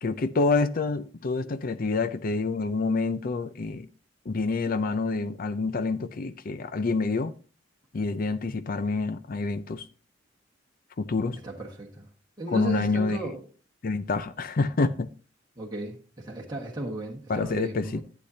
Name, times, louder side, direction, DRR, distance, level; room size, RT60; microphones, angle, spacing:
voice 1, 0.0-3.9 4.3-7.3 7.9-9.9 11.0-11.4 12.5-13.2 13.8-15.1 17.3-18.0, left 3 dB, 45° left, 0.5 m, -27 dB
voice 2, 11.3-12.1 12.4-13.5 15.6-18.0, right 1 dB, 20° right, 1.4 m, -35 dB
11.5 x 8.3 x 2.7 m
head